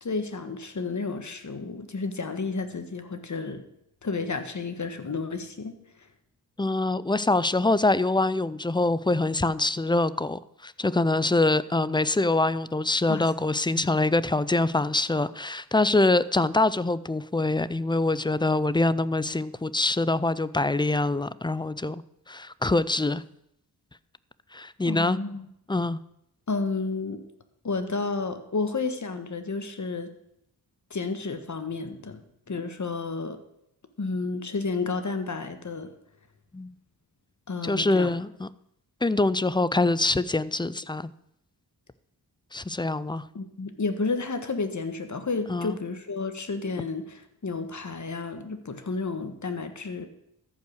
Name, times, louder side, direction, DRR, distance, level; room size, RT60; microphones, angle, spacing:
voice 1, 0.0-3.6 4.0-6.1 13.1-13.2 24.9-25.5 26.5-27.2 27.6-30.1 30.9-33.4 34.0-35.9 37.5-38.1 43.3-50.1, left 4 dB, 45° left, 8 dB, 1.5 m, -31 dB
voice 2, 6.6-22.0 22.3-23.2 24.5-25.2 25.7-26.0 36.5-36.7 37.6-38.5 39.0-41.1 42.5-43.2 45.5-45.8, left 2 dB, 10° left, 17 dB, 0.4 m, -24 dB
14.0 x 5.7 x 6.4 m, 0.76 s
cardioid pair, 65°, 40 cm